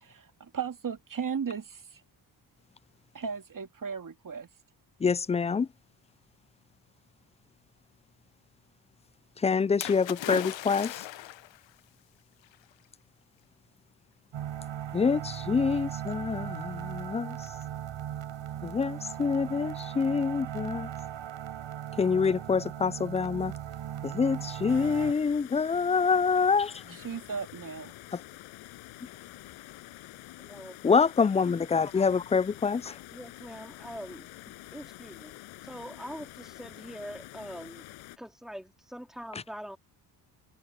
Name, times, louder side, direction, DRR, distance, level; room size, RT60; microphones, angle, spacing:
voice 1, 0.0-1.8 3.1-4.5 26.9-27.9, right 6 dB, 40° right, 2.5 m, -36 dB
voice 2, 5.0-5.7 9.4-11.1 14.9-17.4 18.6-20.9 22.0-23.5 24.0-26.7 28.1-28.2 30.8-33.0, left 5 dB, 15° left, 0.3 m, -26 dB
Splash splatter, 9.8-11.6 12.5-12.6, left 14 dB, 70° left, 1.2 m, -37 dB
sound 1, 14.3-25.1, right 11 dB, 70° right, 6.2 m, -38 dB
sound 2, 24.7-38.2, left 19 dB, 90° left, 6.2 m, -48 dB
voice 3, 30.4-31.0 33.1-35.3 35.6-37.9 38.2-39.8, equal, ahead, 3.3 m, -43 dB
supercardioid pair, 55°, 47 cm